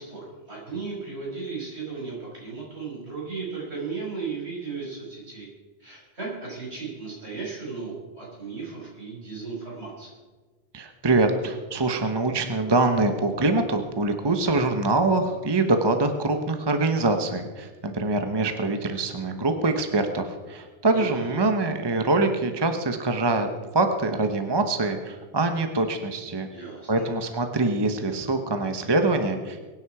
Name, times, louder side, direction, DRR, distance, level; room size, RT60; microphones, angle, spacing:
voice 1, 0.0-5.5 5.8-10.1 20.9-21.4 26.5-27.1, right 4 dB, 70° right, -5 dB, 6.3 m, -35 dB
voice 2, 10.7-23.5 23.7-26.5 26.9-29.6, right 2 dB, 25° right, 6 dB, 1.0 m, -24 dB
22.5 x 9.8 x 4.9 m, 1.4 s
omnidirectional pair, 1.2 m